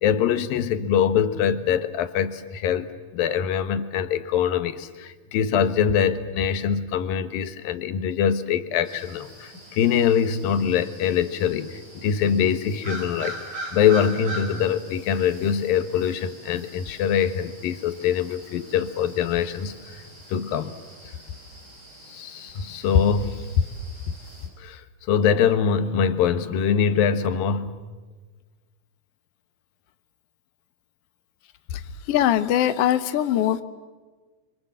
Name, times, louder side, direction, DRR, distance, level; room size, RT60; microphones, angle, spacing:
voice 1, 0.0-13.4 13.7-20.0 20.3-20.7 22.1-23.7 24.6-27.8, left 8 dB, 85° left, 11 dB, 3.0 m, -23 dB
sound 1, 8.8-24.5, right 1 dB, 30° right, 6.1 m, -42 dB
voice 2, 32.1-33.6, left 11 dB, 70° left, 11 dB, 1.5 m, -21 dB
29.5 x 25.0 x 7.7 m, 1.3 s
omnidirectional pair, 4.0 m